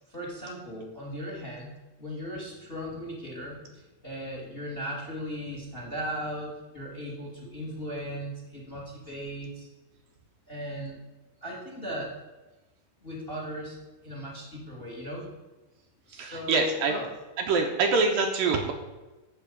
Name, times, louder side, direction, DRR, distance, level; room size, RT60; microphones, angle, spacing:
voice 1, 0.1-1.7 2.0-9.7 10.5-11.0 11.4-12.1 13.0-13.8 14.0-15.3 16.1-17.0, equal, 15° left, -1 dB, 2.2 m, -37 dB
voice 2, 16.1-16.9 17.4-18.7, right 4 dB, 70° right, 3 dB, 2.5 m, -25 dB
12.5 x 8.1 x 5.1 m, 1.1 s
omnidirectional pair, 4.6 m